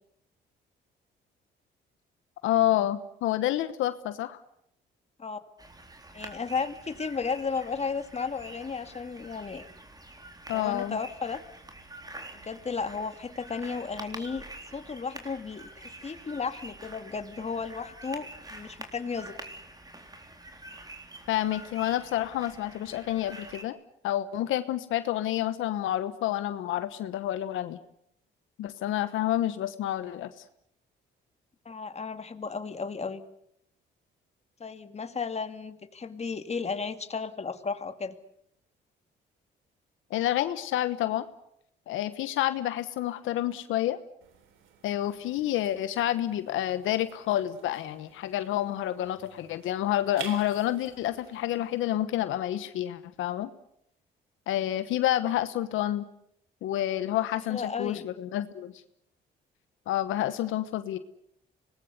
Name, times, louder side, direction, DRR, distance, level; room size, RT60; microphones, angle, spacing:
voice 1, 2.4-4.4 10.5-11.0 21.3-23.8 24.0-27.8 28.6-30.3 40.1-41.3 41.9-44.0 44.8-53.5 54.5-56.1 56.6-58.7 59.9-61.0, left 13 dB, 90° left, 12 dB, 1.1 m, -29 dB
sound 1, 5.6-23.6, right 2 dB, 20° right, 3.7 m, -46 dB
voice 2, 6.1-9.7 10.5-11.4 12.3-14.4 14.7-19.4 31.7-33.2 34.6-38.1 57.5-58.0, left 5 dB, 35° left, 9 dB, 2.2 m, -34 dB
sound 2, 44.2-52.0, right 8 dB, 90° right, 3.6 m, -50 dB
25.5 x 20.0 x 8.1 m, 0.75 s
cardioid pair, 90°, 20 cm